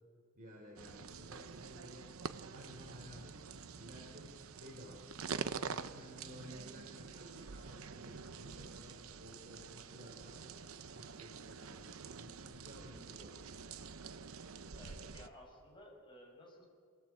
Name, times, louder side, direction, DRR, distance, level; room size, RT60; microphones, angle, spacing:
voice 1, 0.3-2.1 2.5-3.4 3.7-10.4 10.9-13.4, equal, 45° right, -4 dB, 5.4 m, -55 dB
sound 1, 0.8-15.3, right 5 dB, 90° right, 0.8 m, -47 dB
voice 2, 14.7-16.7, left 1 dB, 25° left, -1 dB, 5.7 m, -56 dB
24.0 x 20.0 x 7.9 m, 2.1 s
head